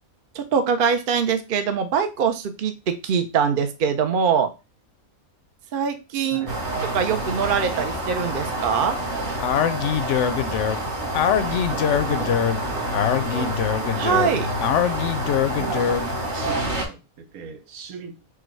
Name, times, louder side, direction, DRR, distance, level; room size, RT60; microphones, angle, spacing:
voice 1, 0.3-4.5 5.7-6.5 6.9-9.0 13.9-14.5, right 7 dB, 50° right, 0.7 m, -23 dB
voice 2, 6.3-6.6 11.0-13.7 14.0-14.5 15.2-18.2, right 5 dB, 80° right, 1.2 m, -39 dB
sound 1, 6.5-16.8, right 1 dB, 35° right, 1.5 m, -28 dB
Speech, 9.4-16.2, left 9 dB, 65° left, 0.8 m, -23 dB
4.8 x 2.3 x 4.5 m
omnidirectional pair, 1.5 m